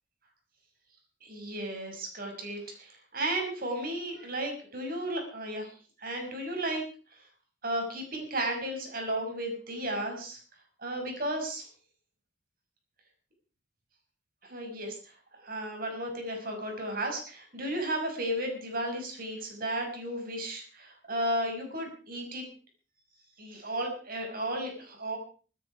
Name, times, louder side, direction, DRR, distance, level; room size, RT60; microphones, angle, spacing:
voice 1, 1.2-6.8 7.6-10.4 10.8-11.6 14.4-22.4 23.4-25.2, right 1 dB, 55° right, 3 dB, 6.1 m, -34 dB
24.5 x 10.0 x 4.8 m, 0.39 s
head